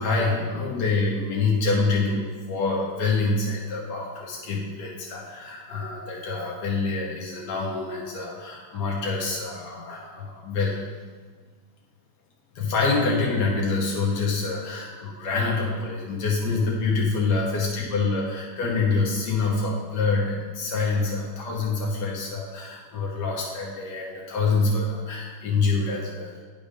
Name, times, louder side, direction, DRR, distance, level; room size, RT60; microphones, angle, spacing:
voice 1, 0.0-10.8 12.5-26.3, left 3 dB, 80° left, -3 dB, 1.6 m, -26 dB
10.0 x 3.7 x 5.1 m, 1.5 s
omnidirectional pair, 1.8 m